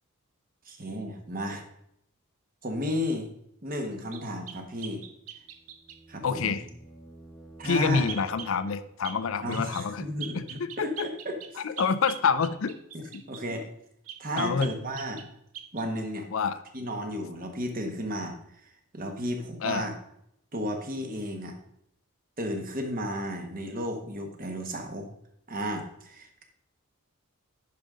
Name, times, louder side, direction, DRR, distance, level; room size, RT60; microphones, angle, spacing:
voice 1, 0.6-1.6 2.6-3.3 3.6-5.0 6.1-6.6 7.6-8.1 9.4-11.4 12.9-13.7 14.2-15.2 15.7-16.3 16.7-19.9 20.5-21.6 22.4-25.1 25.5-26.4, equal, 40° right, 4 dB, 1.2 m, -33 dB
sound 1, 4.1-6.0 8.1-8.6 9.0-9.2 9.5-9.9 10.2-13.5 14.1-15.3 15.5-15.9, right 9 dB, 80° right, 0.7 m, -42 dB
sound 2, 5.2-9.1, right 2 dB, 5° left, 1.0 m, -51 dB
voice 2, 6.2-6.7 7.6-10.1 10.3-11.1 11.6-12.8 13.1-13.2 14.3-14.7 16.3-16.6 19.6-19.9, left 5 dB, 65° left, 13 dB, 0.5 m, -27 dB
10.5 x 5.2 x 3.7 m, 0.75 s
head